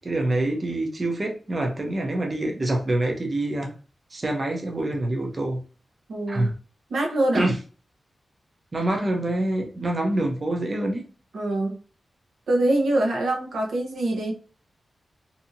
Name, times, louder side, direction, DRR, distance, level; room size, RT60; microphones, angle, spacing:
voice 1, 0.0-3.8 4.1-5.6 6.3-6.5 7.3-7.6 8.7-11.0, right 1 dB, 30° right, 0.5 m, -26 dB
voice 2, 6.1-6.5 6.9-7.5 11.3-11.8 12.5-14.3, right 1 dB, 85° right, 0.8 m, -24 dB
2.7 x 2.6 x 2.5 m
wide cardioid pair, 160°, 0 cm